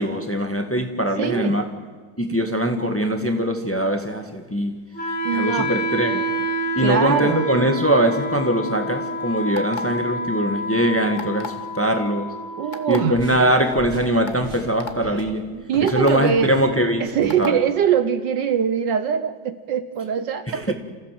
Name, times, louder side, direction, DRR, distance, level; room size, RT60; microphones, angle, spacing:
voice 1, 0.0-1.6 2.2-4.7 5.3-6.2 6.7-12.3 12.9-15.4 15.8-17.6 20.5-20.7, right 1 dB, 5° left, 4 dB, 1.5 m, -22 dB
voice 2, 1.2-1.6 5.2-5.7 6.8-7.4 12.6-13.1 15.5-16.5 17.0-20.7, right 8 dB, 65° right, 10 dB, 1.5 m, -22 dB
Wind instrument woodwind instrument, 4.9-14.9, equal, 90° left, 4.5 m, -29 dB
sound 1, 9.5-10.0 11.2-11.6 12.7-13.0 13.7-13.8 14.3-14.4 14.8-14.9 15.9-16.1 17.3-17.5, left 3 dB, 25° left, 1.3 m, -33 dB
sound 2, 13.1-16.0 16.3-17.4, right 1 dB, 35° right, 3.6 m, -37 dB
28.5 x 15.5 x 7.7 m, 1.4 s
omnidirectional pair, 2.2 m